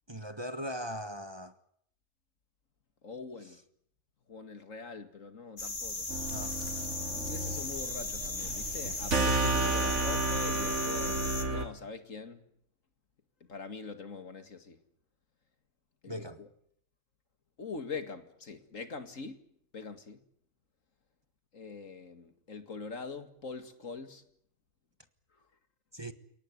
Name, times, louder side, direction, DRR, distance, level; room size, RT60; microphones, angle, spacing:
voice 1, 0.1-1.5 3.4-3.5 6.3-6.5 16.1-16.4 25.9-26.1, equal, 20° right, 1.5 m, -39 dB
voice 2, 3.0-3.6 4.3-6.1 7.1-11.2 11.5-12.4 13.5-14.8 16.0-16.5 17.6-19.4 19.7-20.2 21.5-24.2, left 4 dB, 75° left, 2.5 m, -43 dB
sound 1, 5.6-11.5, left 3 dB, 50° left, 2.8 m, -37 dB
sound 2, 6.1-11.7, right 2 dB, 60° right, 2.4 m, -32 dB
30.0 x 18.5 x 9.8 m
omnidirectional pair, 1.4 m